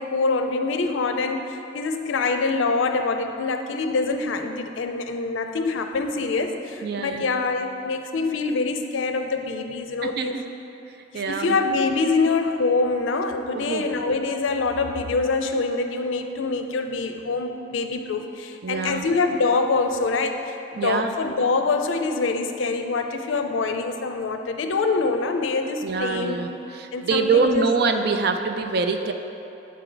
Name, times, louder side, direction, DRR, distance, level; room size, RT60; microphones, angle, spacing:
voice 1, 0.0-10.4 11.1-26.4 26.9-27.7, left 3 dB, 90° left, 6 dB, 0.4 m, -25 dB
voice 2, 6.8-7.2 10.0-10.4 11.1-11.6 13.5-13.8 18.6-19.0 20.8-21.1 25.8-29.1, right 4 dB, 55° right, 6 dB, 0.4 m, -24 dB
7.4 x 4.5 x 3.8 m, 2.8 s
head